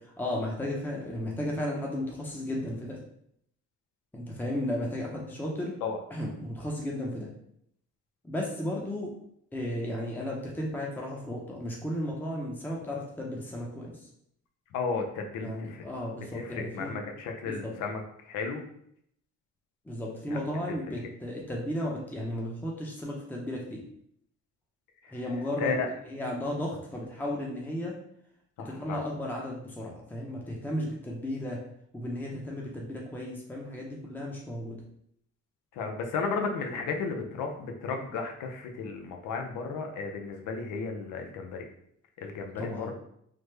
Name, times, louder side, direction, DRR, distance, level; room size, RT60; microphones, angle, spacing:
voice 1, 0.2-3.0 4.1-5.7 6.1-7.3 8.2-9.1 9.5-14.0 15.4-16.9 17.4-17.7 19.9-23.8 25.1-25.8 26.0-27.9 28.6-31.6 31.9-34.8 42.6-42.9, left 1 dB, 5° left, -2 dB, 0.6 m, -34 dB
voice 2, 14.7-15.8 16.3-18.6 20.9-21.0 25.6-25.9 28.6-29.0 35.7-41.6 42.2-42.9, left 4 dB, 90° left, 4 dB, 0.6 m, -34 dB
3.3 x 2.1 x 3.2 m, 0.71 s
cardioid pair, 90°, 30 cm